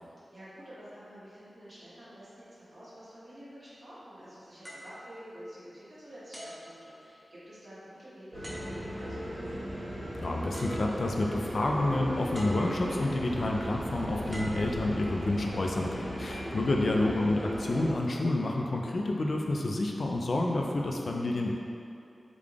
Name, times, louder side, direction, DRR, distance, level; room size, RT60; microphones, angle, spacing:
voice 1, 0.3-9.6 16.2-16.6, equal, 70° right, -11 dB, 1.3 m, -49 dB
sound 1, 4.6-5.8 6.3-7.5 8.4-9.1 10.2-10.3 10.5-11.4 12.3-13.1 14.3-15.4 16.1-16.4, equal, 10° right, 0.8 m, -46 dB
sound 2, 8.3-17.9, equal, 40° right, 1.2 m, -37 dB
voice 2, 10.1-21.6, left 2 dB, 65° left, 0 dB, 0.4 m, -29 dB
3.7 x 2.3 x 3.3 m, 2.6 s
cardioid pair, 40°, 0 cm